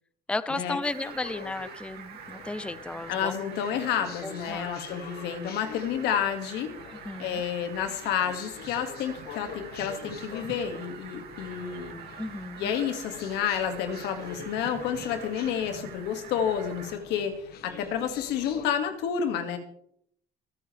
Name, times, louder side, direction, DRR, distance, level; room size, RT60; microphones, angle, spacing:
voice 1, 0.3-3.3 4.2-4.7 7.0-7.4 12.2-12.7, left 2 dB, 5° left, 15 dB, 0.6 m, -34 dB
Fowl, 0.8-17.0, right 7 dB, 70° right, 2.5 m, -45 dB
sound 1, 1.0-18.7, left 8 dB, 65° left, 1.4 m, -46 dB
voice 2, 3.1-6.8 7.2-11.9 12.6-19.6, left 8 dB, 90° left, 6 dB, 2.3 m, -30 dB
25.5 x 10.0 x 3.4 m, 0.68 s
cardioid pair, 110°, 17 cm